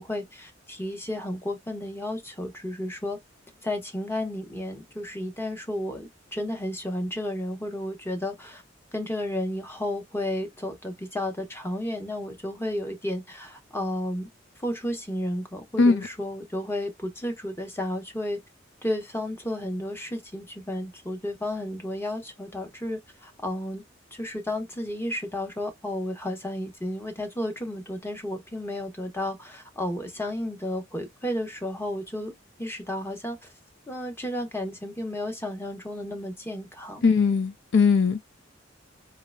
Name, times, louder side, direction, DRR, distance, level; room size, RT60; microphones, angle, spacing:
voice 1, 0.0-3.2 3.6-8.6 8.9-14.3 14.6-18.4 18.8-23.8 24.1-32.3 32.6-33.4 33.9-37.0, left 1 dB, 10° left, 0.9 m, -32 dB
voice 2, 37.0-38.2, left 4 dB, 65° left, 0.4 m, -20 dB
3.8 x 3.1 x 2.2 m
head